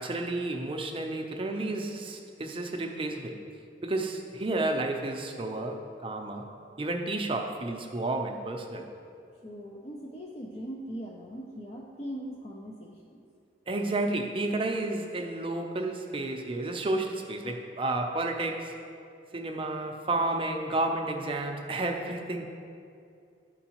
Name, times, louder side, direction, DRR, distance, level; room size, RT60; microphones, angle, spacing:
voice 1, 0.0-3.4 3.8-6.5 6.8-8.9 13.7-18.8 19.3-22.4, right 2 dB, 30° right, 3 dB, 0.6 m, -31 dB
voice 2, 9.4-13.2, equal, 35° left, -2 dB, 0.5 m, -40 dB
12.0 x 4.6 x 3.0 m, 2.4 s
head